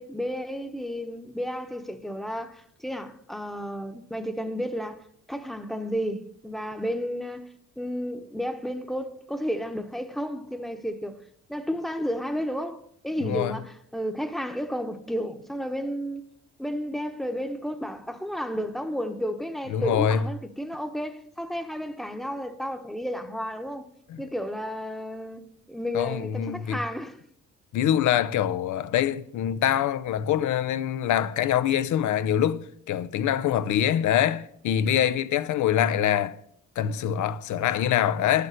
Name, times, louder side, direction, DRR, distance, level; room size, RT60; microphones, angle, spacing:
voice 1, 0.0-11.2 11.5-16.3 16.6-23.9 24.2-27.2, equal, ahead, 1.0 m, -32 dB
voice 2, 13.2-13.6 19.7-20.2 24.1-24.2 25.9-26.8 27.7-36.4 36.8-38.5, left 10 dB, 75° left, 0.7 m, -24 dB
11.0 x 6.8 x 6.5 m
cardioid pair, 90°, 30 cm